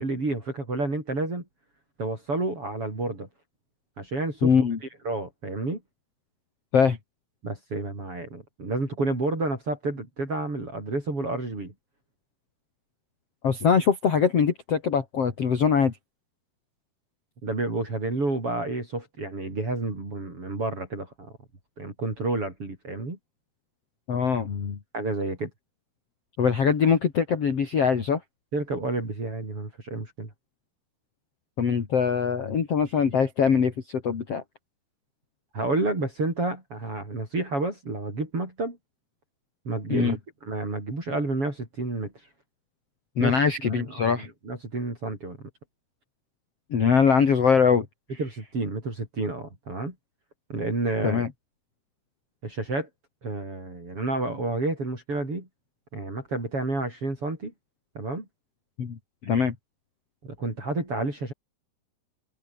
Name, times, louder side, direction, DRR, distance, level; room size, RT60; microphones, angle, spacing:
voice 1, 0.0-1.4 2.0-3.3 4.0-4.5 5.0-5.8 7.4-11.7 17.4-21.3 21.8-23.2 24.9-25.5 28.5-30.3 35.5-38.8 39.7-42.1 43.2-43.4 43.6-45.4 48.2-49.9 50.5-51.2 52.4-52.9 53.2-55.5 55.9-57.5 58.0-58.3 60.2-61.3, right 2 dB, 35° right, 7.3 m, -30 dB
voice 2, 4.4-4.8 6.7-7.0 13.4-15.9 24.1-24.8 26.4-28.2 31.6-34.4 39.9-40.1 43.2-44.3 46.7-47.8 51.0-51.3 58.8-59.0 59.2-59.5, left 6 dB, 40° left, 3.3 m, -22 dB
omnidirectional pair, 4.6 m